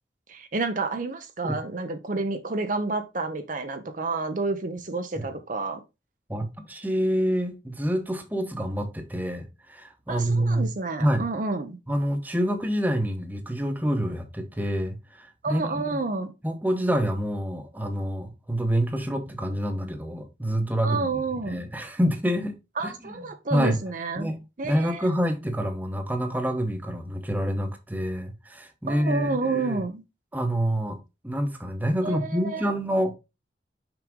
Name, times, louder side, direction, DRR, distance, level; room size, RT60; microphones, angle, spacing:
voice 1, 0.3-5.8 10.1-11.8 15.4-16.3 20.8-21.6 22.8-24.3 24.6-25.1 28.9-30.0 32.0-32.7, right 3 dB, 45° right, 0.7 m, -30 dB
voice 2, 6.3-10.7 11.0-11.3 11.9-15.7 16.4-21.1 21.4-22.5 22.8-23.2 23.5-23.8 24.2-24.4 24.6-29.8 30.3-31.0 31.2-33.2, equal, 10° right, 1.0 m, -27 dB
6.0 x 4.9 x 3.7 m
head